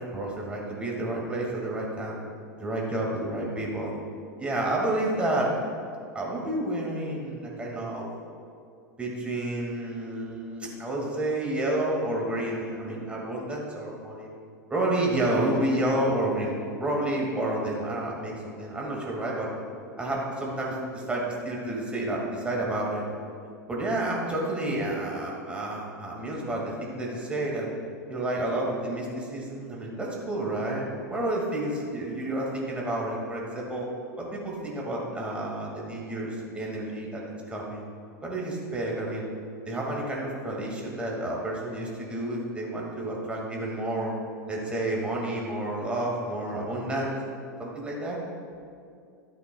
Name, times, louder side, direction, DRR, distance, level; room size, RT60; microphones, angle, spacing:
voice 1, 0.0-2.2 2.6-3.9 4.4-5.5 6.1-8.1 9.0-14.3 14.7-19.5 20.0-23.0 23.7-27.7 28.1-33.9 34.2-37.8 38.2-39.3 39.6-44.1 44.5-47.2 47.6-48.2, right 1 dB, 10° right, -3 dB, 2.1 m, -30 dB
12.5 x 9.2 x 2.3 m, 2.3 s
hypercardioid pair, 90°, 10 cm